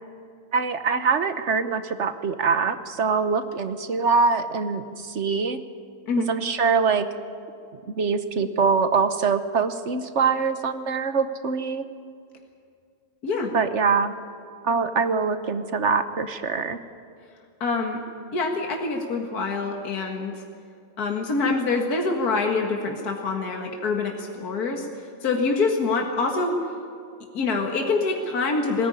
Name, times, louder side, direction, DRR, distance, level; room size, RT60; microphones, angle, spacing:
voice 1, 0.5-5.6 6.3-7.1 7.9-11.8 13.5-14.1 14.6-16.8, right 5 dB, 50° right, 10 dB, 1.2 m, -23 dB
voice 2, 17.6-18.0 18.3-20.4 21.0-24.9 25.2-26.6 27.3-28.9, left 3 dB, 70° left, 2 dB, 2.3 m, -25 dB
20.5 x 18.0 x 9.7 m, 2.3 s
omnidirectional pair, 1.7 m